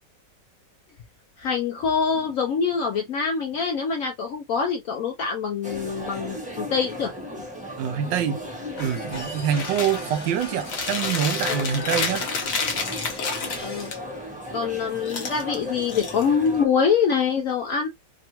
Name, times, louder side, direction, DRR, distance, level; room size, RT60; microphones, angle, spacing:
voice 1, 1.4-7.1 11.5-11.7 13.6-13.9 14.5-17.9, left 6 dB, 75° left, 0.7 m, -25 dB
Ambiance Bar People Loop Stereo, 5.6-16.6, equal, 5° right, 0.7 m, -36 dB
voice 2, 7.8-8.4 8.8-12.3, right 8 dB, 85° right, 1.4 m, -25 dB
sound 1, 8.8-14.0, left 2 dB, 40° left, 1.6 m, -40 dB
Chewing mastication, 9.6-10.0 10.4-14.0 15.0-16.6, left 5 dB, 55° left, 1.1 m, -29 dB
3.4 x 2.3 x 2.9 m
omnidirectional pair, 1.9 m